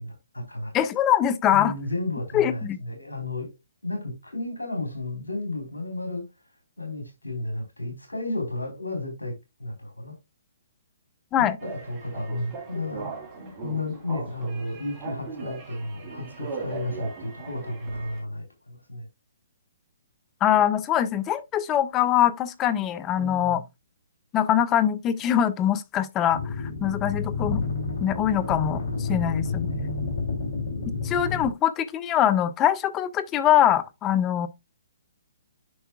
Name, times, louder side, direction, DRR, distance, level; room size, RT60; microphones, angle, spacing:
voice 1, 0.0-0.7 1.5-3.5 3.8-6.2 6.8-10.1 11.4-19.0 23.1-23.6 29.1-30.0, left 2 dB, 90° left, 3.9 m, -33 dB
voice 2, 0.7-1.7 2.3-2.8 11.3-11.6 20.4-23.6 24.3-26.4 26.8-27.6 28.0-29.7 31.0-34.5, left 10 dB, 20° left, 0.7 m, -23 dB
sound 1, 11.6-18.2, right 4 dB, 20° right, 2.9 m, -39 dB
sound 2, 26.3-31.5, left 4 dB, 55° left, 3.1 m, -30 dB
9.5 x 5.6 x 2.3 m
figure-of-eight pair, 130°, 0 cm